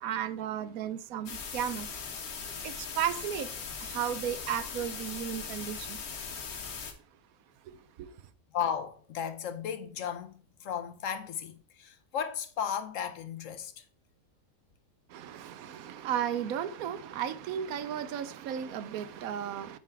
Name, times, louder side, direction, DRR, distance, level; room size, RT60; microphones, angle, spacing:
voice 1, 0.0-1.9 2.6-3.5 3.8-6.0 8.0-8.1 15.1-19.8, right 10 dB, 80° right, 1.1 m, -34 dB
sound 1, 1.3-6.9, left 6 dB, 85° left, 1.6 m, -39 dB
voice 2, 8.5-10.3 10.6-13.8, left 8 dB, 65° left, 1.1 m, -35 dB
9.1 x 4.5 x 4.5 m
omnidirectional pair, 1.5 m